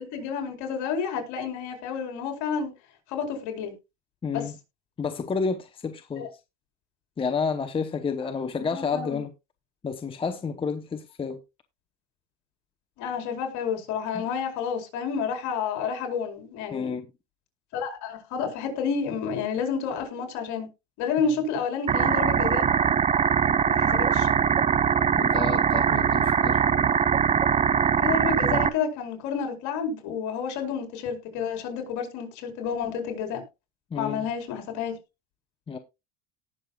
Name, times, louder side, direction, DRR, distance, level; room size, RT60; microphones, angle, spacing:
voice 1, 0.0-2.7 3.1-3.7 4.3-4.5 6.2-6.3 8.4-9.2 13.0-16.9 17.7-20.7 21.0-22.6 23.8-24.3 28.0-33.4 33.9-35.0, left 6 dB, 60° left, 4.2 m, -30 dB
voice 2, 4.2-4.5 5.0-6.3 7.2-9.3 9.8-11.4 14.1-14.2 16.7-17.1 25.2-26.6 33.9-34.3 35.7-35.8, left 5 dB, 15° left, 0.8 m, -30 dB
sound 1, 21.9-28.7, right 7 dB, 20° right, 0.6 m, -22 dB
18.0 x 6.7 x 2.3 m
supercardioid pair, 130°, 33 cm